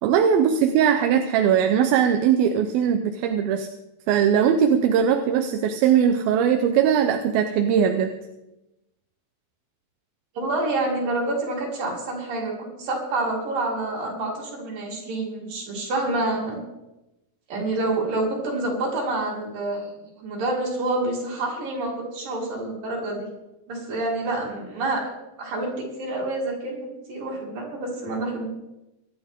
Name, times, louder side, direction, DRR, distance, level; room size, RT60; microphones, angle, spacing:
voice 1, 0.0-3.7 4.1-8.1, right 8 dB, 80° right, 6 dB, 2.5 m, -20 dB
voice 2, 10.4-16.6 17.5-19.9 20.2-23.3 23.7-25.1 25.4-28.5, right 2 dB, 60° right, -3 dB, 5.6 m, -28 dB
23.5 x 11.0 x 3.7 m, 0.95 s
omnidirectional pair, 4.5 m